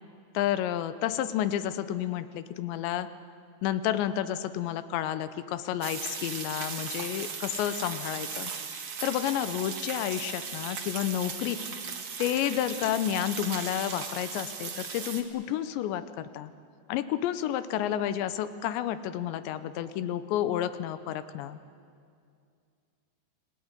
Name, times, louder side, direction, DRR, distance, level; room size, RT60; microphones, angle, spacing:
voice 1, 0.3-3.1 3.6-8.5 9.0-11.6 12.2-16.5 16.9-21.6, left 11 dB, 90° left, 12 dB, 3.2 m, -30 dB
sound 1, 5.8-15.2, right 5 dB, 45° right, 2.2 m, -37 dB
27.5 x 20.0 x 9.8 m, 2.3 s
omnidirectional pair, 5.0 m